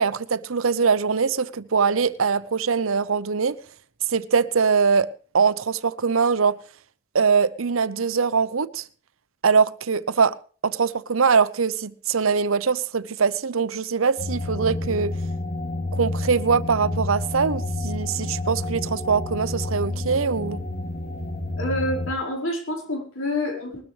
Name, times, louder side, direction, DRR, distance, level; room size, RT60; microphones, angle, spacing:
voice 1, 0.0-3.6 4.1-5.1 5.3-6.6 7.1-8.8 9.4-10.4 10.6-15.2 15.9-20.6, right 5 dB, 80° right, 0.8 m, -22 dB
sound 1, 14.2-22.1, left 2 dB, 45° left, 2.5 m, -29 dB
voice 2, 21.6-23.8, left 1 dB, 75° left, 4.8 m, -27 dB
20.5 x 13.5 x 3.3 m
head